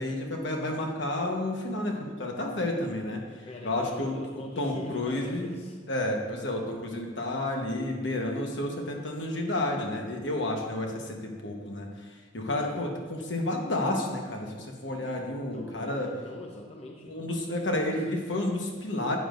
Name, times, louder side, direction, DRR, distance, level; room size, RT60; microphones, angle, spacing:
voice 1, 0.0-4.1 4.6-5.5 5.9-12.1 12.3-16.1 17.0-19.2, left 1 dB, 70° left, 1 dB, 1.2 m, -31 dB
voice 2, 3.5-5.8 12.5-12.9 15.5-17.2, left 1 dB, 30° left, 0 dB, 0.6 m, -43 dB
10.0 x 8.6 x 2.6 m, 1.5 s
head